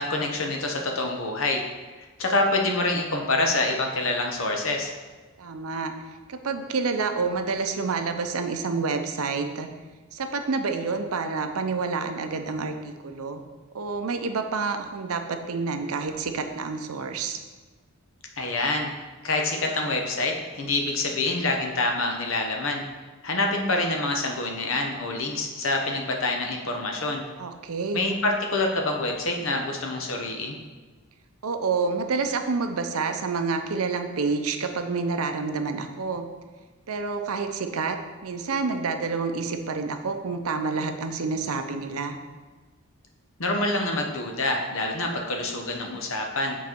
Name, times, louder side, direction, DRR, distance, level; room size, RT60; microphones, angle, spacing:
voice 1, 0.0-1.6 2.0-4.9 18.4-18.9 19.2-22.8 23.2-27.2 27.9-30.6 43.4-46.6, left 2 dB, 60° left, 2 dB, 0.9 m, -26 dB
voice 2, 5.4-5.9 6.3-9.7 10.1-13.4 13.7-17.4 27.4-28.1 31.4-36.3 36.9-42.2, right 4 dB, 75° right, 7 dB, 0.6 m, -28 dB
7.4 x 4.1 x 4.4 m, 1.3 s
head